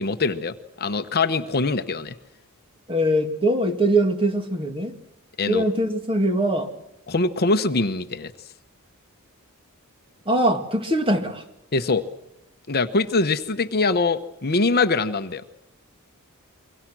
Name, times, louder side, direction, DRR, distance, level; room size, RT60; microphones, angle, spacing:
voice 1, 0.0-2.2 5.4-5.6 7.1-8.3 11.7-12.0 12.7-15.4, left 3 dB, 45° left, 9 dB, 1.0 m, -23 dB
voice 2, 2.9-4.9 5.5-6.7 10.3-11.4, right 1 dB, 25° right, 6 dB, 2.4 m, -22 dB
29.0 x 23.5 x 6.2 m, 0.85 s
head